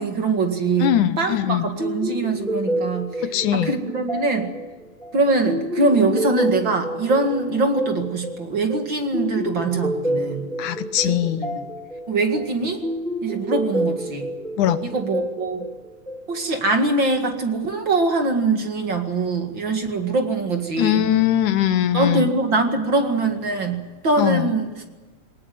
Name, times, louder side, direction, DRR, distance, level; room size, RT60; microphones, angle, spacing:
voice 1, 0.0-4.5 5.1-10.5 11.0-11.7 12.1-12.8 13.2-14.3 14.8-15.7 16.3-21.1 21.9-24.7, right 3 dB, 40° right, 5 dB, 2.3 m, -23 dB
voice 2, 0.8-1.7 3.3-3.7 10.6-11.5 14.6-14.8 20.8-22.3 24.2-24.5, left 11 dB, 75° left, 12 dB, 2.4 m, -21 dB
sound 1, 1.8-16.6, equal, ahead, 1.7 m, -29 dB
23.0 x 19.0 x 9.4 m, 1.2 s
omnidirectional pair, 3.6 m